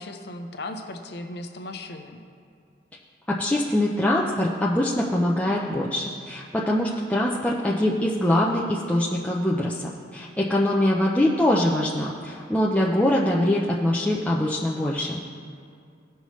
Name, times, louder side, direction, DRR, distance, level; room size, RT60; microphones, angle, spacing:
voice 1, 0.0-2.2 10.7-11.0, left 2 dB, 60° left, 5 dB, 0.7 m, -37 dB
voice 2, 3.3-15.2, left 1 dB, 5° left, -4 dB, 0.5 m, -23 dB
16.0 x 5.6 x 3.1 m, 2.3 s
head